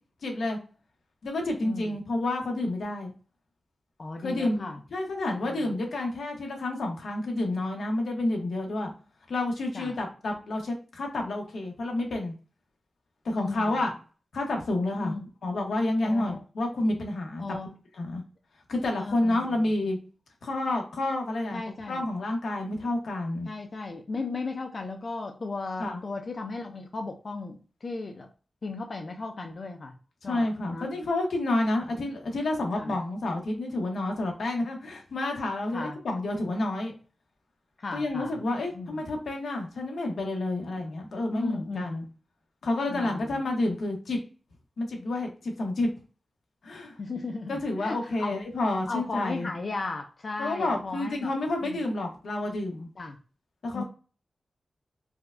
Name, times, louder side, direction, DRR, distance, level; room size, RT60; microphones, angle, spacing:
voice 1, 0.2-0.6 1.2-3.1 4.2-8.9 9.3-12.3 13.2-13.9 14.3-15.2 15.4-17.6 17.9-18.2 18.7-20.0 20.4-21.6 21.9-23.5 25.8-26.0 30.2-36.9 37.9-42.1 42.6-44.2 44.8-45.9 46.6-47.0 47.5-49.5 50.4-52.9 53.6-53.8, left 2 dB, 90° left, 2 dB, 1.0 m, -29 dB
voice 2, 1.6-2.0 4.0-4.8 5.4-5.7 9.7-10.0 13.3-13.8 15.0-15.3 16.1-16.4 17.4-17.7 18.9-19.7 21.5-22.1 22.8-22.9 23.5-28.3 28.6-29.9 30.2-30.9 32.8-32.9 35.7-36.0 37.8-38.4 38.7-39.0 41.3-42.1 42.9-43.4 47.0-48.4 48.9-51.3 51.6-51.8 53.0-53.2 53.7-53.8, left 3 dB, 40° left, 4 dB, 0.4 m, -36 dB
4.7 x 2.2 x 2.4 m, 0.36 s
wide cardioid pair, 160°, 0 cm